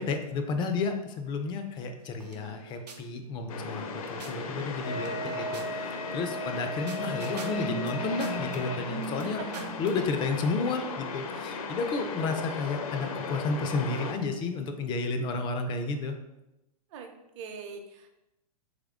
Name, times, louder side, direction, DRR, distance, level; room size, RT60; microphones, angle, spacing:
voice 1, 0.0-9.4 9.8-16.2, left 4 dB, 25° left, 6 dB, 0.4 m, -32 dB
sound 1, 2.0-4.3 4.8-10.0, right 2 dB, 85° right, 0.6 m, -42 dB
sound 2, 3.5-14.1, left 4 dB, 60° left, 0.6 m, -37 dB
Wind instrument woodwind instrument, 4.8-8.8, right 1 dB, 85° left, 0.9 m, -37 dB
voice 2, 16.9-18.1, right 5 dB, 50° right, 4 dB, 0.7 m, -43 dB
3.6 x 3.2 x 3.6 m, 0.94 s
hypercardioid pair, 115°, 20 cm